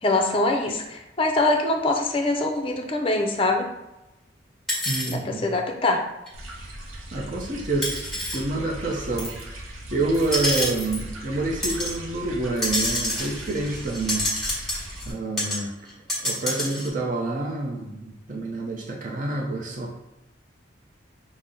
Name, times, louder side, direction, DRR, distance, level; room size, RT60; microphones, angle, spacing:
voice 1, 0.0-3.7 5.1-6.0, left 2 dB, 25° left, 3 dB, 0.5 m, -23 dB
sound 1, 4.7-5.1 6.3-6.4 7.8-8.4 9.2-9.4 10.1-11.0 11.6-12.0 12.6-15.1 15.4-15.6 15.9-16.9, left 1 dB, ahead, 1.2 m, -28 dB
voice 2, 4.8-5.5 7.1-9.6 9.9-14.3 15.1-15.7 16.2-20.0, right 2 dB, 40° right, -1 dB, 0.6 m, -28 dB
sound 2, 6.3-15.1, equal, 85° right, 0.8 m, -38 dB
5.7 x 2.1 x 3.8 m, 0.97 s
head